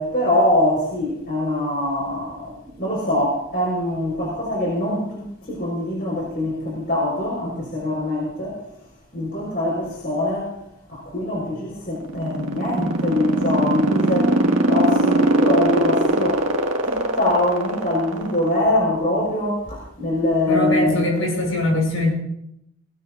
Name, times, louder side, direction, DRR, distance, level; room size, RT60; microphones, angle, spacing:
voice 1, 0.0-8.6 9.1-10.5 10.9-16.5 16.8-21.1, left 1 dB, 45° left, -3 dB, 4.4 m, -23 dB
sound 1, 12.0-18.6, right 1 dB, 70° right, 1.8 m, -19 dB
voice 2, 20.5-22.1, left 2 dB, 70° left, -1 dB, 6.9 m, -22 dB
20.0 x 19.0 x 2.5 m, 0.76 s
head